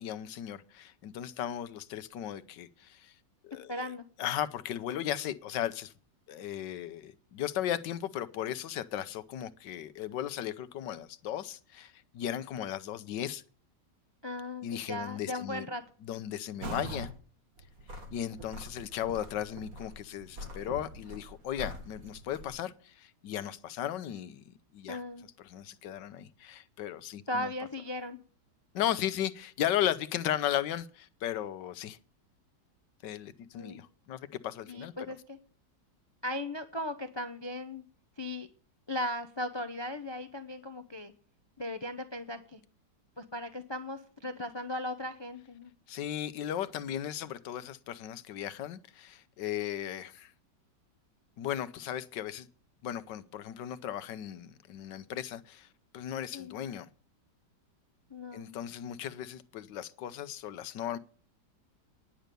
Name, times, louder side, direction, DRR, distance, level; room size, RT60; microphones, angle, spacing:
voice 1, 0.0-3.1 3.4-3.9 4.2-5.9 6.3-13.4 14.6-15.7 16.0-17.1 17.9-25.0 25.4-27.5 28.7-32.0 33.0-34.9 45.9-50.3 51.4-52.5 52.8-55.7 55.9-56.9 58.3-61.0, left 11 dB, 85° left, 1.5 m, -36 dB
voice 2, 3.7-4.1 14.2-15.8 24.9-25.3 27.3-28.2 33.5-33.8 34.7-35.4 36.2-37.8 38.2-38.5 38.9-41.1 41.6-42.6 43.2-45.7 56.3-56.5 58.1-58.6, left 1 dB, 35° left, 0.4 m, -37 dB
sound 1, 16.6-17.1 17.6-22.5, right 1 dB, 55° right, 2.5 m, -43 dB
10.5 x 6.7 x 9.1 m
omnidirectional pair, 1.9 m